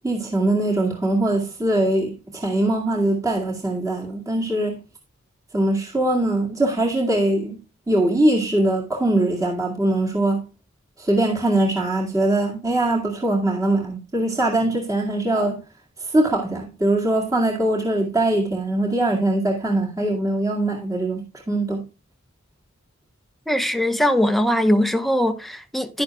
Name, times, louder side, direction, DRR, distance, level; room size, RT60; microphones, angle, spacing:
voice 1, 0.0-4.8 5.5-7.6 7.9-10.4 11.0-15.6 16.0-21.8, right 1 dB, 15° right, 2.1 m, -22 dB
voice 2, 23.5-26.0, equal, ahead, 0.9 m, -21 dB
11.5 x 10.0 x 2.3 m
head